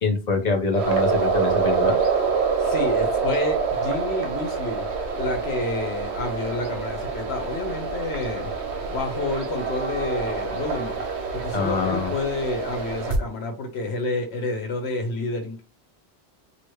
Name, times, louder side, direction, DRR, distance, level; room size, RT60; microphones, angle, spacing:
voice 1, 0.0-2.0 11.5-12.1, left 4 dB, 45° left, 0.8 m, -24 dB
sound 1, 0.7-13.2, right 5 dB, 85° right, 1.0 m, -26 dB
voice 2, 2.6-4.9 5.1-8.5 8.9-11.0 11.3-15.6, left 2 dB, 80° left, 1.2 m, -29 dB
2.9 x 2.5 x 3.1 m
omnidirectional pair, 1.1 m